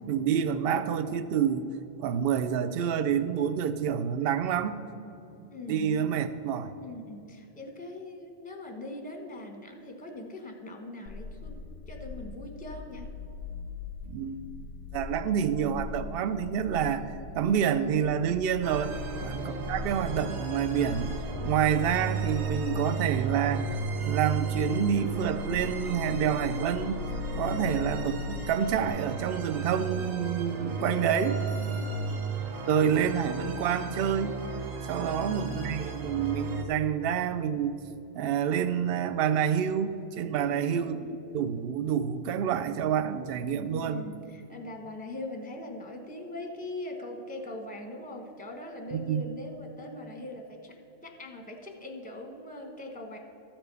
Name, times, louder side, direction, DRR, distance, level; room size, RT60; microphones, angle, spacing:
voice 1, 0.1-1.7 2.0-4.8 5.4-6.7 14.1-14.4 14.9-21.1 21.5-23.7 24.0-27.0 27.3-31.4 32.7-34.3 34.9-37.8 38.2-41.0 41.3-44.0 48.9-49.2, right 8 dB, 60° right, 12 dB, 0.6 m, -28 dB
voice 2, 5.5-6.1 6.8-11.6 11.9-13.1 18.9-19.3 27.4-27.8 31.7-32.1 34.9-35.7 40.4-41.1 43.6-50.7 51.0-53.2, left 2 dB, 5° left, 2 dB, 0.9 m, -41 dB
sound 1, 11.1-28.9, left 5 dB, 60° left, 0.6 m, -41 dB
sound 2, 18.6-36.7, right 3 dB, 85° right, 1.3 m, -34 dB
13.5 x 4.5 x 6.8 m, 2.9 s
omnidirectional pair, 1.4 m